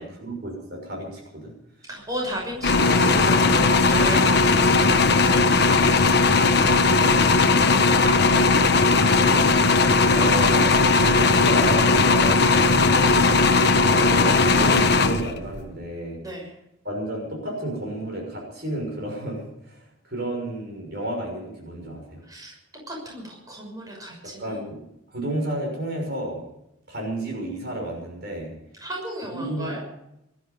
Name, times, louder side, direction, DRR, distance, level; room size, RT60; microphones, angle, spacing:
voice 1, 0.0-1.5 9.0-9.6 10.1-16.2 16.8-22.2 24.2-24.8 25.1-26.4 26.9-28.5 29.3-29.7, right 1 dB, 50° right, 1 dB, 6.2 m, -32 dB
voice 2, 1.9-4.8 16.2-16.5 22.3-22.5 22.9-24.6 28.8-29.8, equal, 15° right, -2 dB, 6.3 m, -34 dB
sound 1, 2.6-15.6, left 3 dB, 50° left, 1.2 m, -18 dB
19.5 x 14.0 x 5.3 m, 0.82 s
head